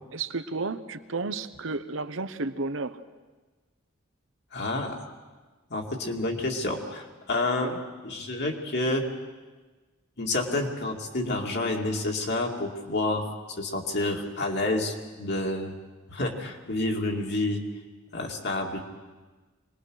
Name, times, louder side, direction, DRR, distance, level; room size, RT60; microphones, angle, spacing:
voice 1, 0.1-3.0 7.6-7.8, right 3 dB, 65° right, 12 dB, 1.0 m, -32 dB
voice 2, 4.5-5.1 5.7-7.8 8.0-9.0 10.2-15.7 16.1-17.6 18.1-18.8, left 2 dB, 55° left, 1 dB, 2.5 m, -29 dB
25.5 x 20.5 x 6.4 m, 1.3 s
head